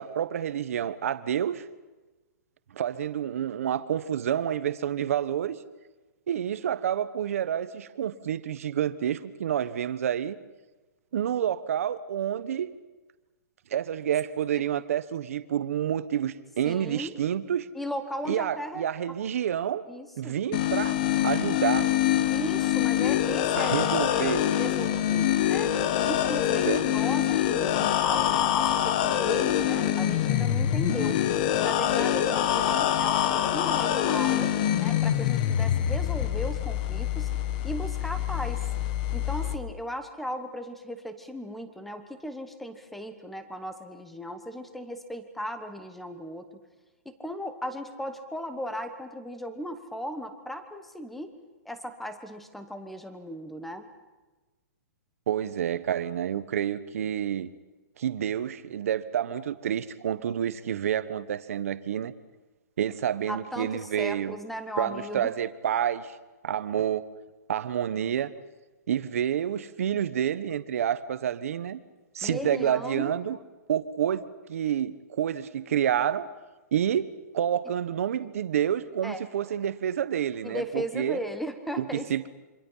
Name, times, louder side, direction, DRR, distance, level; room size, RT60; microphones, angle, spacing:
voice 1, 0.0-1.6 2.7-5.6 6.3-10.3 11.1-12.7 13.7-17.7 18.2-19.8 20.2-21.9 23.5-24.5 26.7-26.8 55.3-57.5 58.0-62.1 62.8-64.4 64.8-66.2 66.4-67.0 67.5-68.3 68.9-71.8 72.1-73.4 73.7-74.2 74.5-76.3 76.7-81.2 81.8-82.3, right 9 dB, 55° right, 13 dB, 1.2 m, -28 dB
voice 2, 16.6-17.2 17.7-18.8 19.9-20.4 22.3-25.7 26.0-31.2 31.6-37.3 37.6-38.6 39.1-46.5 47.0-51.3 51.6-53.9 63.3-65.3 72.2-73.2 79.0-79.2 80.4-82.1, equal, ahead, 9 dB, 1.1 m, -37 dB
sound 1, 20.5-39.5, left 11 dB, 30° left, 1.1 m, -25 dB
26.5 x 25.5 x 5.7 m, 1.2 s
hypercardioid pair, 170°, 9 cm